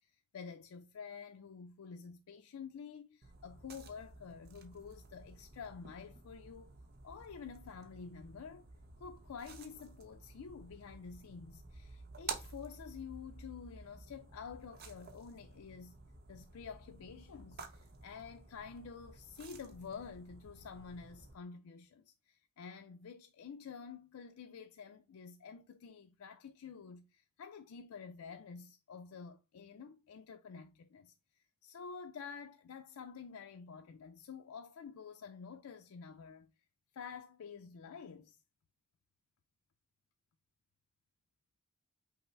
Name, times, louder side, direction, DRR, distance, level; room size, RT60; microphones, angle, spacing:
voice 1, 0.3-6.7 7.0-8.7 9.0-16.0 16.3-31.1 31.6-36.5 36.9-38.4, left 6 dB, 75° left, 0.4 m, -49 dB
sound 1, 3.2-21.3, right 4 dB, 45° right, 0.7 m, -52 dB
5.5 x 2.0 x 4.4 m
head